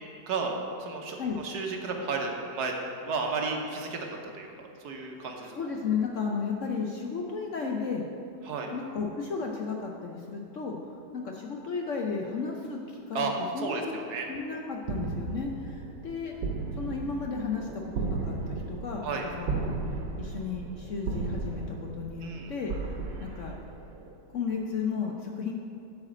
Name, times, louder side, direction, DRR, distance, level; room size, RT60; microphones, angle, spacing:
voice 1, 0.8-2.7 3.0-4.5 4.8-5.5 8.4-8.7 13.1-14.3 19.0-19.3 22.2-22.5, right 4 dB, 65° right, 2 dB, 1.4 m, -33 dB
voice 2, 5.5-8.1 8.7-10.8 11.1-13.3 13.5-14.0 14.3-16.3 16.8-19.7 20.2-22.9 23.2-23.5 24.3-25.5, left 5 dB, 60° left, 0 dB, 0.8 m, -33 dB
sound 1, 14.8-24.1, right 3 dB, 80° right, 1.5 m, -35 dB
8.7 x 4.9 x 7.5 m, 2.5 s
omnidirectional pair, 1.9 m